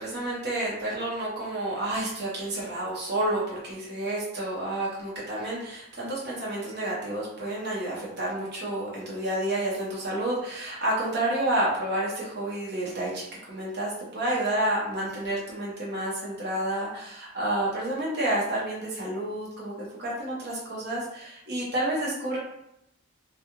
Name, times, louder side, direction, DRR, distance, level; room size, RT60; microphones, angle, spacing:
voice 1, 0.0-22.4, right 1 dB, 50° right, -5 dB, 0.8 m, -30 dB
2.4 x 2.3 x 2.9 m, 0.80 s
head